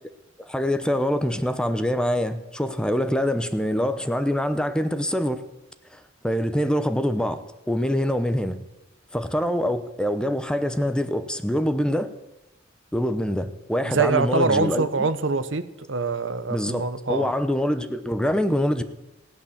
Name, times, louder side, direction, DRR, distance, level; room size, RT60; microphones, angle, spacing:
voice 1, 0.4-5.4 5.9-7.4 7.7-8.6 9.1-12.1 12.9-15.1 16.5-18.8, equal, 5° left, 11 dB, 0.8 m, -25 dB
voice 2, 13.8-17.3, right 4 dB, 65° right, 12 dB, 0.9 m, -24 dB
16.5 x 11.0 x 7.2 m, 0.94 s
head